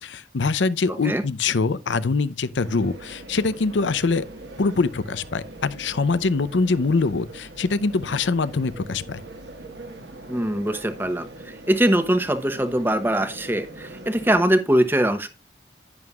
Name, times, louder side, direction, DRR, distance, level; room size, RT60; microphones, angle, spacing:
voice 1, 0.0-4.3 4.6-9.2, left 4 dB, 90° left, 0.6 m, -23 dB
sound 1, 2.6-14.5, right 1 dB, 75° right, 1.6 m, -42 dB
voice 2, 10.3-15.3, right 1 dB, 10° right, 0.9 m, -22 dB
11.0 x 9.5 x 2.4 m
head